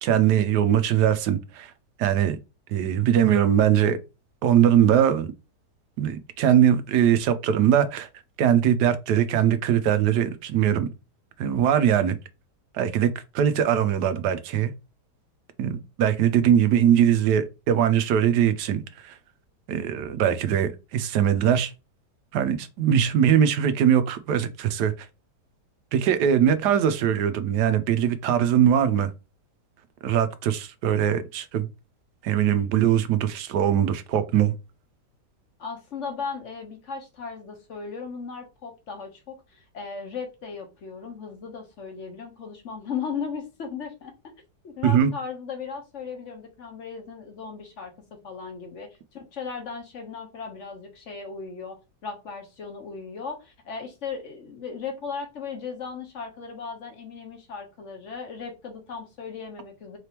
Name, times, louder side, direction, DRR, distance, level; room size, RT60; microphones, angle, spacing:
voice 1, 0.0-1.7 2.0-2.4 2.7-4.0 4.4-5.3 6.0-8.1 8.4-10.9 11.4-12.2 12.7-14.7 15.6-19.1 19.7-21.7 22.3-24.9 25.9-29.1 30.0-31.7 32.2-34.5 44.8-45.1, right 9 dB, 80° right, 1.2 m, -21 dB
voice 2, 35.6-44.3 44.6-47.9 48.2-60.0, left 5 dB, 50° left, 1.1 m, -37 dB
4.1 x 3.3 x 2.9 m
omnidirectional pair, 1.8 m